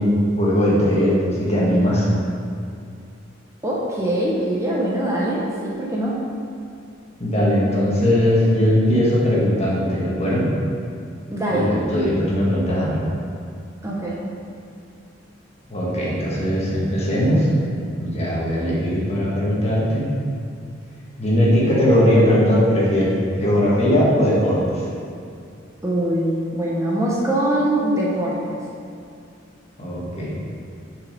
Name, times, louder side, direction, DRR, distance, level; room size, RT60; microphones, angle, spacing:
voice 1, 0.0-2.1 7.2-10.5 11.5-13.0 15.7-17.5 18.0-20.1 21.2-24.8 29.8-30.3, equal, 35° left, -6 dB, 1.7 m, -19 dB
voice 2, 3.6-6.1 11.3-11.7 13.8-14.2 25.8-28.6, right 1 dB, 15° right, -5 dB, 0.8 m, -23 dB
6.6 x 5.0 x 5.1 m, 2.4 s
head